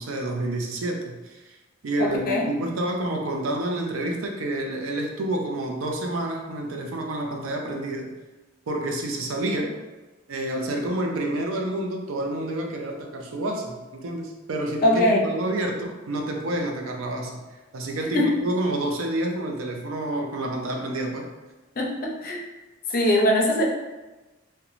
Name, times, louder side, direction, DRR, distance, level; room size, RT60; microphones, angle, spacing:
voice 1, 0.0-1.6 1.8-8.1 8.7-9.7 10.3-17.4 17.7-21.3, right 1 dB, 90° right, 2 dB, 0.5 m, -29 dB
voice 2, 2.0-2.5 14.8-15.2 18.1-18.3 21.8-22.4 22.9-23.6, left 1 dB, 45° left, -2 dB, 0.5 m, -21 dB
2.9 x 2.2 x 2.4 m, 1.2 s
head